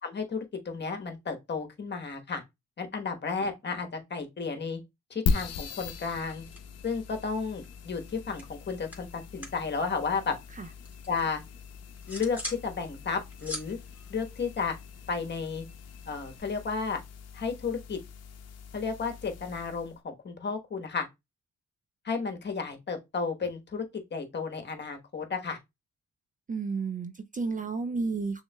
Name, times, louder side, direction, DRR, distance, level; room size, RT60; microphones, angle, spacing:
voice 1, 0.0-2.4 2.8-4.8 5.1-6.5 6.8-10.3 11.1-11.4 12.1-13.8 14.1-14.8 15.1-15.6 16.1-17.0 17.3-18.0 18.7-21.1 22.0-25.6, left 5 dB, 35° left, 1.2 m, -33 dB
sound 1, 5.3-20.0, left 4 dB, 55° left, 0.7 m, -39 dB
sound 2, 5.9-7.1 7.4-9.7 9.9-11.2 11.7-12.7 13.0-15.1, left 1 dB, 5° right, 2.1 m, -43 dB
voice 2, 26.5-28.4, right 4 dB, 25° right, 0.4 m, -32 dB
6.3 x 3.2 x 2.2 m
cardioid pair, 90°, 30 cm